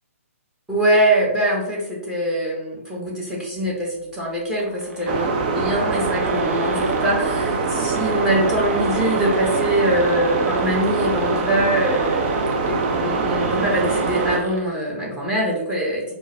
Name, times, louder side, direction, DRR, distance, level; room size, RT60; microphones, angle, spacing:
voice 1, 0.7-5.3 5.5-16.0, right 1 dB, 10° right, -4 dB, 1.2 m, -23 dB
sound 1, 4.6-5.3 5.7-5.8 5.9-7.2 7.8-14.7, right 1 dB, 85° right, 1.0 m, -35 dB
sound 2, 5.1-14.4, right 4 dB, 35° right, 0.5 m, -23 dB
4.5 x 2.6 x 3.4 m, 0.89 s
figure-of-eight pair, 135°, 8 cm